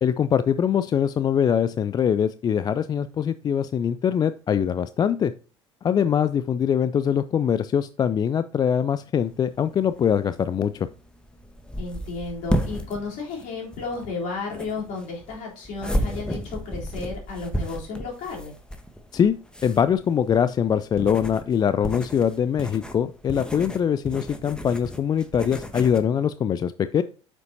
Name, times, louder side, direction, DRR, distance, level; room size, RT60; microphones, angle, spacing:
voice 1, 0.0-5.3 5.8-10.9 19.1-19.3 19.6-27.0, left 8 dB, 25° left, 13 dB, 0.4 m, -23 dB
sound 1, 9.2-26.0, equal, 5° left, 1.2 m, -33 dB
voice 2, 11.8-18.5, left 4 dB, 50° left, -2 dB, 3.7 m, -33 dB
8.9 x 6.7 x 2.8 m, 0.36 s
figure-of-eight pair, 65°, 16 cm